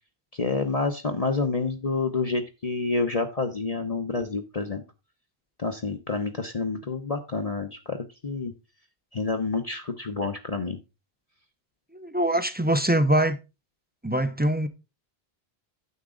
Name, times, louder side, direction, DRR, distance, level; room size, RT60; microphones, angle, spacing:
voice 1, 0.3-4.8 5.6-8.5 9.1-10.8, left 3 dB, 35° left, 0.9 m, -28 dB
voice 2, 11.9-13.4 14.0-14.7, right 1 dB, 10° right, 0.7 m, -23 dB
9.6 x 7.4 x 3.8 m
omnidirectional pair, 1.1 m